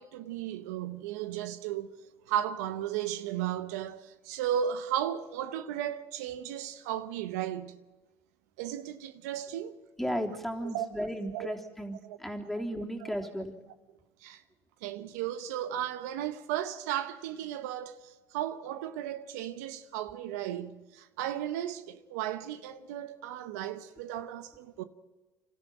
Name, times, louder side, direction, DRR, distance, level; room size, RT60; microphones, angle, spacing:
voice 1, 0.0-1.9 2.3-7.8 8.6-9.7 10.6-11.6 12.0-12.2 12.6-12.7 13.0-13.3 14.2-14.4 14.8-24.8, right 10 dB, 85° right, 0.9 m, -35 dB
voice 2, 10.0-13.5, equal, ahead, 3.4 m, -35 dB
26.0 x 13.5 x 9.0 m
supercardioid pair, 70°, 8 cm